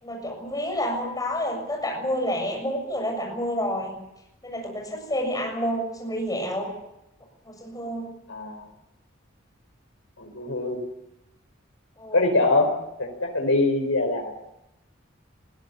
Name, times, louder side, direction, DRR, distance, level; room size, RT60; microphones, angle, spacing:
voice 1, 0.0-4.0 4.4-6.7 7.5-8.1 12.0-12.3, equal, 20° left, 2 dB, 7.0 m, -29 dB
voice 2, 8.3-8.6 10.2-10.8 12.1-14.3, left 2 dB, 80° left, 3 dB, 4.8 m, -23 dB
21.5 x 16.5 x 9.9 m, 0.86 s
head